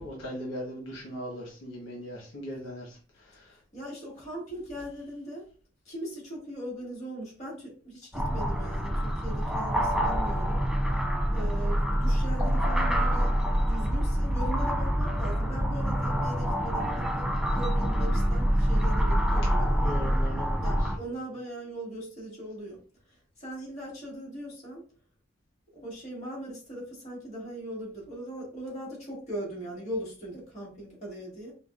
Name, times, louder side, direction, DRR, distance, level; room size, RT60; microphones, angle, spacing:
voice 1, 0.0-3.6 19.8-20.9, equal, 70° left, -3 dB, 1.2 m, -39 dB
voice 2, 3.7-5.4 5.8-10.6 11.3-17.3 17.5-20.2 20.6-22.8 23.4-24.8 25.7-31.5, right 1 dB, 35° left, -5 dB, 1.8 m, -39 dB
sound 1, 8.1-21.0, equal, 5° right, 0.3 m, -26 dB
5.1 x 2.4 x 2.5 m, 0.40 s
head